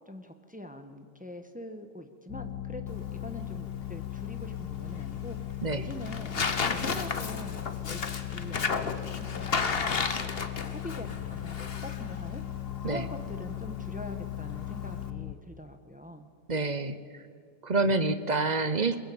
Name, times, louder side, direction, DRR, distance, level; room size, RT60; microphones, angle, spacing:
voice 1, 0.1-6.3 6.6-10.3 10.7-12.4 12.8-16.3, left 1 dB, 5° right, 7 dB, 1.2 m, -44 dB
sound 1, 2.3-15.3, left 13 dB, 70° left, 1.4 m, -37 dB
Tearing, 2.9-15.1, left 5 dB, 35° left, 1.2 m, -35 dB
voice 2, 16.5-17.2 17.6-19.0, right 3 dB, 40° right, 11 dB, 0.6 m, -28 dB
22.5 x 21.0 x 8.7 m, 2.1 s
omnidirectional pair, 2.1 m